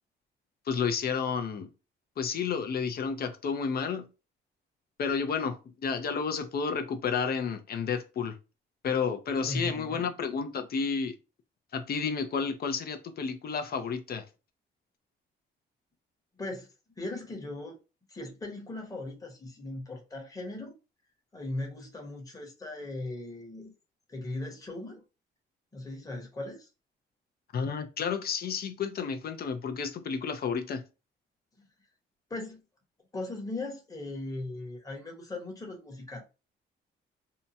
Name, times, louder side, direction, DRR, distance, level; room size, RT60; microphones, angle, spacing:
voice 1, 0.7-1.7 2.2-4.1 5.0-8.4 8.8-11.2 11.7-14.3 27.5-30.8, left 6 dB, 50° left, 0.6 m, -31 dB
voice 2, 9.4-10.1 16.4-17.8 18.1-20.7 21.3-23.7 24.1-25.0 25.7-26.7 31.6-31.7 32.3-32.6 33.1-36.2, left 2 dB, 15° left, 1.0 m, -38 dB
2.7 x 2.2 x 2.7 m
cardioid pair, 90°, 20 cm